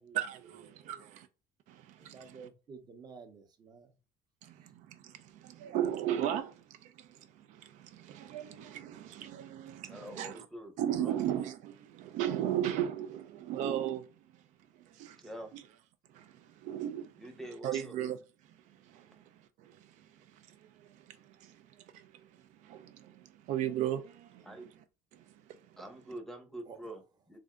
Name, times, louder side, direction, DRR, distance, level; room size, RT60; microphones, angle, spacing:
voice 1, 0.1-1.3 1.7-2.5 4.4-10.5 10.8-14.4 14.7-15.2 15.5-15.6 16.1-17.3 17.6-18.2 18.4-24.7 25.1-25.8, right 11 dB, 70° right, 0.5 m, -37 dB
voice 2, 0.7-1.0 2.0-3.9 26.7-26.8, right 5 dB, 30° right, 0.7 m, -51 dB
voice 3, 9.8-11.2 15.2-15.5 17.2-18.0 24.4-24.7 25.8-27.4, right 1 dB, ahead, 0.7 m, -45 dB
3.3 x 2.5 x 3.6 m
cardioid pair, 145°, 13 cm